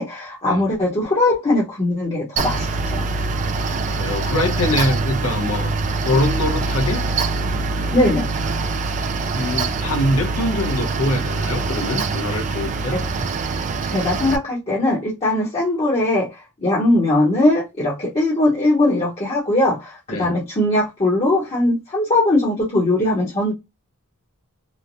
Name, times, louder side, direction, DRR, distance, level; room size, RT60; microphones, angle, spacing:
voice 1, 0.0-3.0 7.9-8.3 12.9-13.0 13.9-23.5, left 1 dB, 30° left, 0.8 m, -20 dB
Mechanical fan, 2.4-14.4, right 3 dB, 35° right, 0.3 m, -24 dB
voice 2, 3.5-5.7 6.0-7.0 9.3-13.0 20.1-20.3, left 1 dB, 70° left, 0.9 m, -23 dB
3.1 x 2.1 x 2.5 m
head